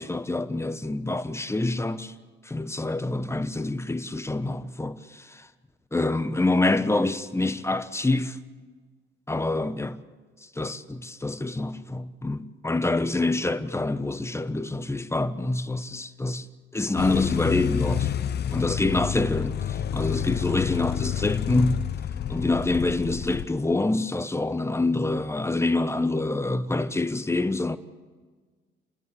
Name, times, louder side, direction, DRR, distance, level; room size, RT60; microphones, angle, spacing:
voice 1, 0.0-2.1 2.4-5.5 5.9-8.4 9.3-10.0 10.5-16.5 16.7-18.1 18.5-21.9 22.3-27.8, left 2 dB, 15° left, 1.1 m, -26 dB
sound 1, 17.0-23.5, left 9 dB, 55° left, 0.8 m, -29 dB
29.0 x 10.5 x 8.3 m
cardioid pair, 90°, 20 cm